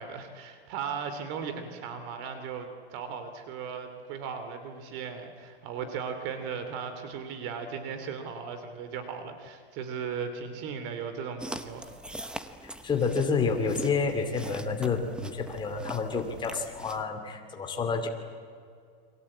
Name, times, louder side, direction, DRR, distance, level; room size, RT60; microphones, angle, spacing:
voice 1, 0.0-11.9, right 6 dB, 45° right, 8 dB, 2.8 m, -37 dB
sound 1, 11.4-17.0, right 1 dB, 5° right, 0.9 m, -43 dB
voice 2, 12.6-18.1, left 5 dB, 15° left, 4 dB, 2.6 m, -29 dB
29.5 x 23.0 x 8.6 m, 2.3 s
supercardioid pair, 160°, 30 cm